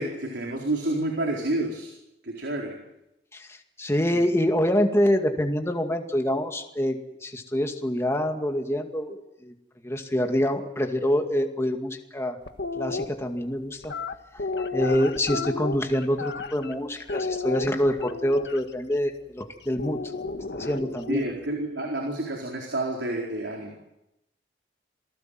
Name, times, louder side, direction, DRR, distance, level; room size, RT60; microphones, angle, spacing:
voice 1, 0.0-1.9 2.2-2.8 4.1-4.2 21.1-23.8, right 1 dB, 85° right, 1 dB, 4.3 m, -29 dB
voice 2, 3.3-9.5 9.8-12.4 12.8-13.9 14.3-14.4 14.7-20.0 20.5-21.2, equal, 15° left, 4 dB, 2.2 m, -26 dB
sound 1, 12.5-13.0 13.8-16.7 17.1-18.6 19.8-21.1, left 3 dB, 70° left, 1.6 m, -32 dB
28.0 x 19.5 x 7.7 m, 0.88 s
head